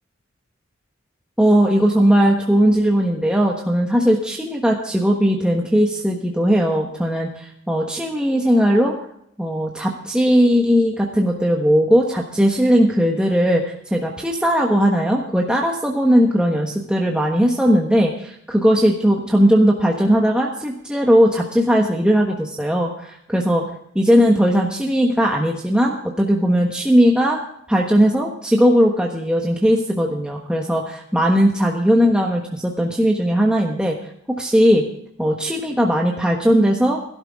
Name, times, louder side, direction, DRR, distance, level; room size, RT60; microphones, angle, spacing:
voice 1, 1.4-8.9 9.4-23.6 23.9-27.4 27.7-33.9 34.3-34.9 35.2-37.0, equal, 5° right, 0 dB, 1.3 m, -18 dB
17.0 x 12.0 x 3.6 m, 0.71 s
head